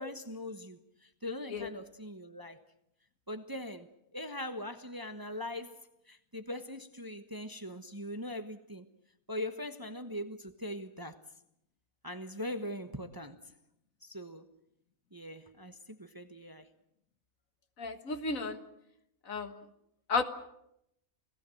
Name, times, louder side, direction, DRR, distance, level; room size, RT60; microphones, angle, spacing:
voice 1, 0.0-2.6 3.3-5.8 6.1-8.9 9.3-11.2 12.0-13.4 14.0-14.5 15.1-16.7, left 1 dB, 15° right, 1.0 m, -41 dB
voice 2, 17.8-18.6 19.3-19.6 20.1-20.2, left 4 dB, 70° left, 2.0 m, -33 dB
29.0 x 18.0 x 7.8 m
omnidirectional pair, 1.5 m